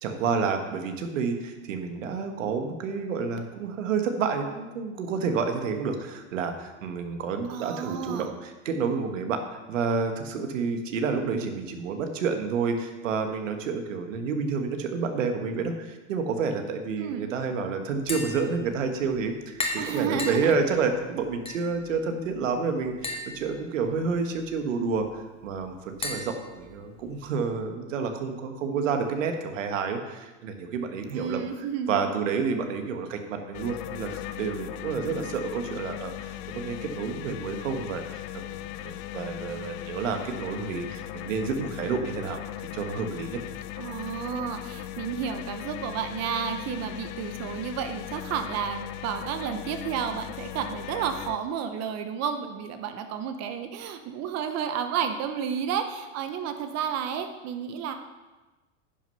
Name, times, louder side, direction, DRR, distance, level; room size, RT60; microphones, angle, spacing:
voice 1, 0.0-9.4 9.7-31.4 31.9-36.1 36.5-43.4, right 5 dB, 85° right, 6 dB, 1.5 m, -29 dB
voice 2, 7.5-8.3 17.0-17.3 19.8-20.5 31.1-32.1 43.8-57.9, right 7 dB, 45° right, 7 dB, 0.9 m, -31 dB
Tap, 17.9-27.4, left 2 dB, 15° left, 1.7 m, -39 dB
sound 1, 33.5-51.4, left 13 dB, 50° left, 0.7 m, -38 dB
10.5 x 6.4 x 5.5 m, 1.2 s
hypercardioid pair, 115°, 37 cm